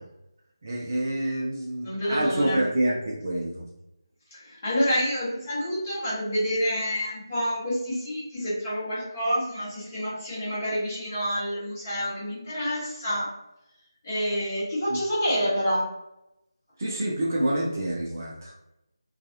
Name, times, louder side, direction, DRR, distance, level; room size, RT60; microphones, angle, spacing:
voice 1, 0.6-3.6 14.9-15.0 16.8-18.5, right 1 dB, 40° right, -3 dB, 0.5 m, -27 dB
voice 2, 1.8-2.6 4.3-13.3 14.0-15.9, equal, 25° left, -9 dB, 1.2 m, -28 dB
2.5 x 2.3 x 2.6 m, 0.89 s
figure-of-eight pair, 160°, 2 cm